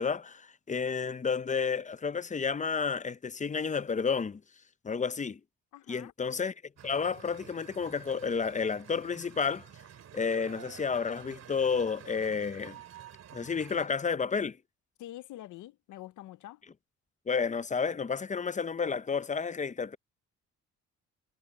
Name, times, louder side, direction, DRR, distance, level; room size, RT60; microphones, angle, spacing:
voice 1, 0.0-4.4 4.8-5.4 5.9-6.5 6.8-9.6 10.1-12.8 13.3-14.6 17.3-20.0, left 5 dB, 25° left, 0.7 m, -31 dB
voice 2, 5.7-6.1 15.0-16.6, left 14 dB, 80° left, 0.8 m, -46 dB
sound 1, 6.8-13.9, right 9 dB, 60° right, 2.4 m, -50 dB
cardioid pair, 90°, 30 cm